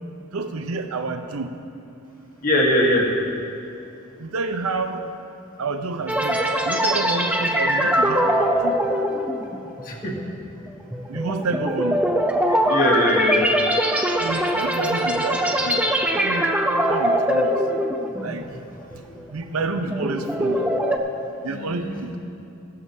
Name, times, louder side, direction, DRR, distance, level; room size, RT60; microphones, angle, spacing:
voice 1, 0.3-1.5 4.2-5.0 5.6-8.8 11.1-12.1 14.2-15.8 16.2-16.6 16.9-17.6 18.2-18.5 19.3-20.8 21.4-22.2, right 3 dB, 80° right, 7 dB, 0.7 m, -29 dB
voice 2, 2.4-3.0 9.8-10.1 12.7-13.4 21.5-22.2, left 1 dB, 40° left, -1 dB, 1.5 m, -21 dB
sound 1, 6.1-18.6 18.9-19.2 19.7-21.0, equal, 5° right, 0.6 m, -22 dB
14.5 x 13.5 x 2.7 m, 2.7 s
head